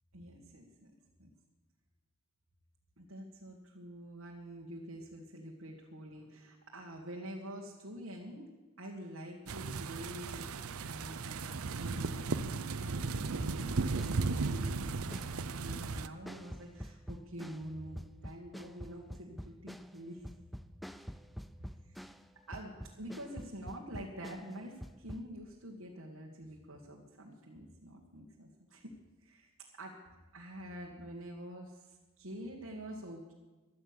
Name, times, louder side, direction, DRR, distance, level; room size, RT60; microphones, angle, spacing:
voice 1, 0.1-0.9 1.2-1.3 3.0-8.5 8.8-20.2 22.5-28.9 29.2-29.5 29.7-30.0 30.3-33.3, equal, 70° right, -2 dB, 1.9 m, -47 dB
sound 1, 9.5-16.1, right 4 dB, 85° right, 0.7 m, -36 dB
sound 2, 13.4-22.3 22.5-25.3, equal, ahead, 0.5 m, -47 dB
16.0 x 11.5 x 6.9 m, 1.2 s
head